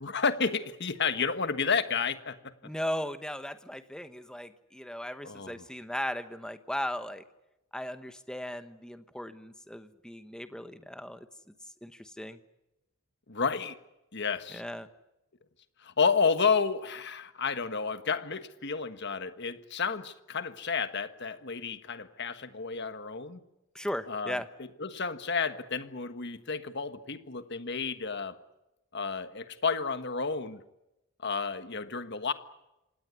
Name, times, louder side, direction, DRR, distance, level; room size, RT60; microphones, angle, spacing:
voice 1, 0.0-2.4 5.2-5.5 13.3-13.8 14.1-14.6 15.8-23.4 24.1-24.4 24.8-28.4 28.9-30.6 31.2-32.3, left 5 dB, 50° left, 10 dB, 1.4 m, -31 dB
voice 2, 2.6-7.2 7.7-11.3 11.8-12.4 14.5-14.9 23.7-24.5, equal, 5° left, 10 dB, 1.1 m, -37 dB
26.5 x 18.5 x 9.7 m, 0.95 s
head